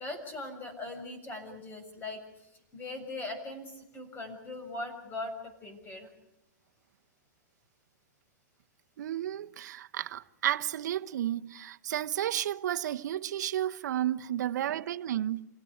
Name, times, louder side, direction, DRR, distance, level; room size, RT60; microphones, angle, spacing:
voice 1, 0.0-6.1, left 2 dB, 20° left, 6.9 m, -40 dB
voice 2, 9.0-15.4, right 12 dB, 70° right, 1.0 m, -32 dB
28.5 x 17.0 x 9.4 m
hypercardioid pair, 140°, 10 cm